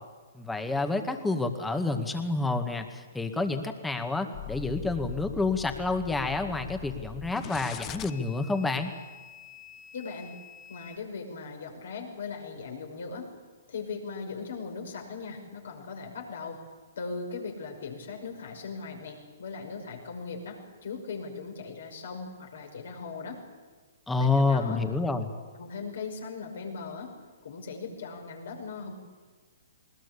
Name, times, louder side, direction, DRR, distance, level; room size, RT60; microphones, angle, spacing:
voice 1, 0.3-8.9 24.1-25.3, left 3 dB, 5° left, 7 dB, 2.0 m, -28 dB
sound 1, 4.3-11.0, left 10 dB, 30° left, 1.0 m, -43 dB
voice 2, 9.9-10.3 10.7-13.3 13.7-16.6 17.0-23.4 24.2-24.8 25.6-27.2 27.4-28.9, left 4 dB, 70° left, 2 dB, 5.7 m, -39 dB
20.5 x 20.0 x 8.5 m, 1.4 s
hypercardioid pair, 125°, 0 cm